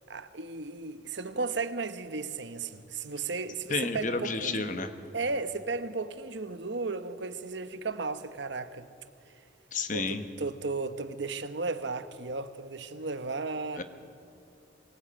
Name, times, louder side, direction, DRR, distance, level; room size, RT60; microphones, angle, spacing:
voice 1, 0.1-4.8 5.1-8.9 9.9-13.8, right 3 dB, 75° right, 1.1 m, -35 dB
voice 2, 3.7-4.9 9.7-10.2 13.8-13.9, left 3 dB, 45° left, 1.3 m, -31 dB
22.5 x 16.5 x 8.9 m
head